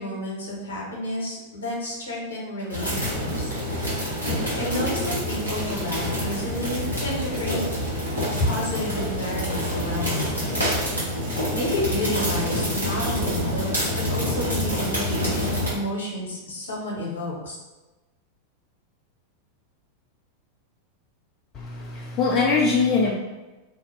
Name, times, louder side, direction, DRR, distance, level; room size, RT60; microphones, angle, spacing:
voice 1, 0.0-3.5 4.6-7.6 8.4-10.4 11.5-17.6, left 1 dB, 70° left, -4 dB, 0.9 m, -30 dB
sound 1, 2.7-15.7, equal, 80° right, 1.0 m, -27 dB
voice 2, 21.5-23.1, left 4 dB, 35° left, -3 dB, 0.3 m, -22 dB
2.5 x 2.1 x 3.0 m, 1.1 s
figure-of-eight pair, 90°, 0 cm